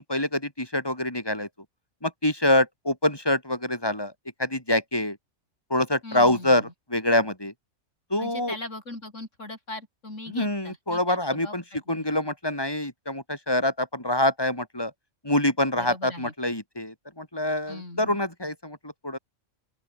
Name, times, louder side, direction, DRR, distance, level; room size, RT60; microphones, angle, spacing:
voice 1, 0.1-1.5 2.0-4.1 4.4-5.2 5.7-7.5 8.1-8.6 10.3-14.9 15.2-19.2, left 1 dB, 20° left, 5.7 m, -25 dB
voice 2, 6.0-6.7 8.2-12.0 15.8-16.3 17.7-18.2, left 2 dB, 75° left, 5.8 m, -40 dB
open air
omnidirectional pair, 1.3 m